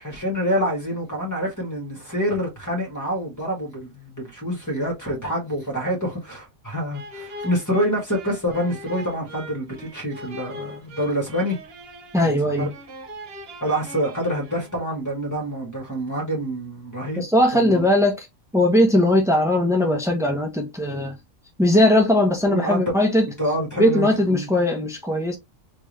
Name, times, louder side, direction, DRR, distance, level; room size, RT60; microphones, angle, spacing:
voice 1, 0.0-11.6 12.2-12.7 13.6-17.3 17.5-17.8 22.4-22.9 23.4-24.5, equal, 15° left, 1.5 m, -26 dB
sound 1, 6.9-15.0, equal, 50° right, 0.9 m, -41 dB
voice 2, 12.1-12.7 17.2-18.3 18.5-21.1 21.6-23.3 23.8-25.4, left 1 dB, 5° right, 0.3 m, -19 dB
3.5 x 3.0 x 3.1 m
omnidirectional pair, 1.4 m